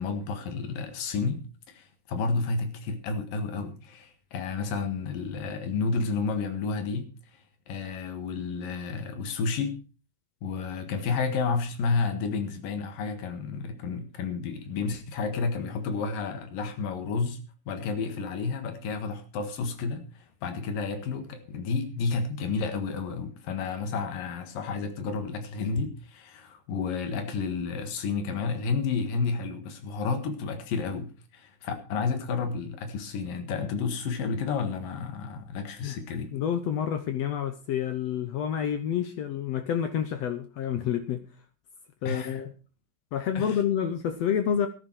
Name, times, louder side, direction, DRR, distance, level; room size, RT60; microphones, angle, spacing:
voice 1, 0.0-7.1 7.7-9.8 10.4-17.4 17.7-36.3 42.1-42.4 43.4-43.6, left 4 dB, 85° left, 3.4 m, -31 dB
voice 2, 36.3-41.2 42.0-42.5 43.1-44.7, left 9 dB, 70° left, 1.7 m, -28 dB
14.0 x 11.5 x 4.6 m
omnidirectional pair, 3.8 m